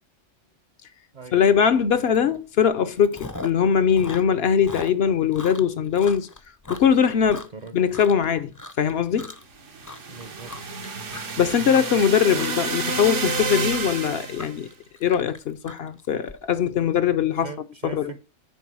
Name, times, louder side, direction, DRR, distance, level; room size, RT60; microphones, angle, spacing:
voice 1, 1.3-6.3 6.7-7.4 7.7-8.5 8.8-9.3 11.4-14.7 15.0-17.5 17.8-18.1, left 8 dB, 60° left, 0.8 m, -21 dB
Chewing mastication, 2.1-2.4 2.7-3.6 3.9-8.3 8.5-8.9 9.2-9.6 9.8-16.3, left 2 dB, 20° left, 0.5 m, -39 dB
voice 2, 7.3-7.8 10.1-10.5 12.3-12.5 17.4-18.2, right 6 dB, 45° right, 0.8 m, -39 dB
sound 1, 9.6-14.6, right 3 dB, 80° right, 1.5 m, -30 dB
9.2 x 4.6 x 6.0 m
omnidirectional pair, 1.2 m